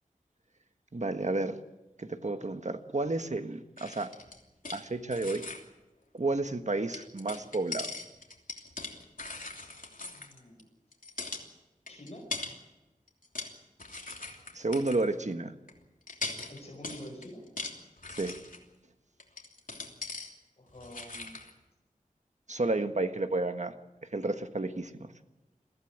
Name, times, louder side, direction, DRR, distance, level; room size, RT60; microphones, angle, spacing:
voice 1, 0.9-1.6 2.0-4.1 4.7-5.4 6.1-7.9 14.5-15.5 18.2-18.4 22.5-23.7 24.1-25.1, right 2 dB, 55° right, 8 dB, 1.5 m, -31 dB
sound 1, 3.8-4.8 5.1-5.6 6.9-10.6 10.9-11.5 11.9-12.6 13.1-13.5 13.8-15.0 15.7-15.8 16.1-18.6 19.2-20.3 20.7-21.5, left 3 dB, 70° left, 3.0 m, -40 dB
voice 2, 10.1-10.7 11.9-12.3 16.5-17.5 20.6-21.4, equal, 45° left, 0 dB, 5.0 m, -47 dB
22.0 x 15.5 x 8.9 m, 1.0 s
wide cardioid pair, 45°, 14 cm